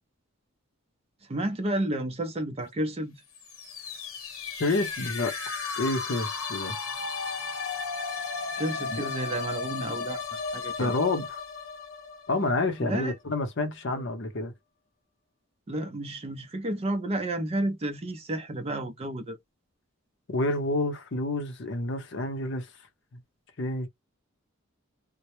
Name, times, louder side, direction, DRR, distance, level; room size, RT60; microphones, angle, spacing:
voice 1, 1.3-3.1 8.6-10.2 10.5-10.9 12.8-13.1 13.9-14.0 15.7-19.4, right 1 dB, 30° right, 0.4 m, -31 dB
sound 1, 3.3-13.1, left 5 dB, 90° left, 1.0 m, -35 dB
voice 2, 4.6-5.3 5.8-6.8 8.9-9.0 10.8-11.4 12.3-14.5 20.3-22.7 23.6-23.9, left 2 dB, 55° left, 0.7 m, -28 dB
2.1 x 2.0 x 2.9 m
head